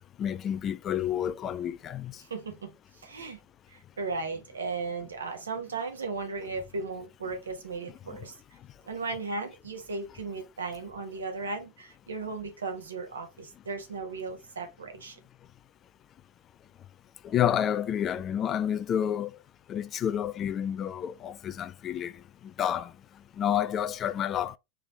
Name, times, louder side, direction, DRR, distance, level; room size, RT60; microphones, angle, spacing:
voice 1, 0.2-2.1 8.1-8.2 17.2-19.3 19.7-22.1 22.6-22.9 23.4-24.6, left 10 dB, 30° left, 0.3 m, -29 dB
voice 2, 2.2-3.4 3.7-8.4 8.9-15.2, right 4 dB, 70° right, 1.2 m, -36 dB
4.8 x 3.3 x 3.1 m
figure-of-eight pair, 90°, 0 cm